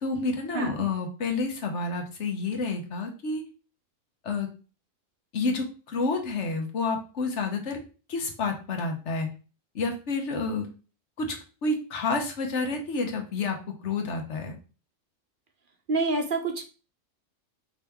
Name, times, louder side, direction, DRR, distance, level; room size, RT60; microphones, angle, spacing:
voice 1, 0.0-3.4 4.2-4.5 5.3-7.8 8.1-9.3 9.7-10.7 11.2-11.4 11.6-13.6 13.8-14.5, left 3 dB, 65° left, 3 dB, 1.2 m, -29 dB
voice 2, 0.5-0.8 15.9-16.6, right 3 dB, 50° right, 4 dB, 0.7 m, -27 dB
5.1 x 3.0 x 3.4 m, 0.35 s
omnidirectional pair, 1.3 m